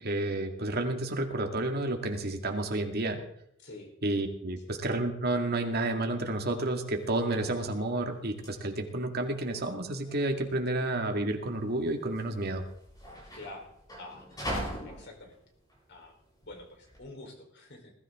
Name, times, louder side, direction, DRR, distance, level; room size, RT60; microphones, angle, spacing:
voice 1, 0.0-3.2 4.0-12.6, right 2 dB, 50° right, 4 dB, 2.0 m, -30 dB
voice 2, 3.6-3.9 13.3-13.7 14.0-14.3 14.8-15.4 15.9-16.1 16.4-17.9, left 2 dB, 55° left, 2 dB, 3.9 m, -46 dB
sound 1, 6.9-17.0, equal, 20° left, 7.9 m, -43 dB
20.5 x 13.5 x 3.7 m, 0.73 s
head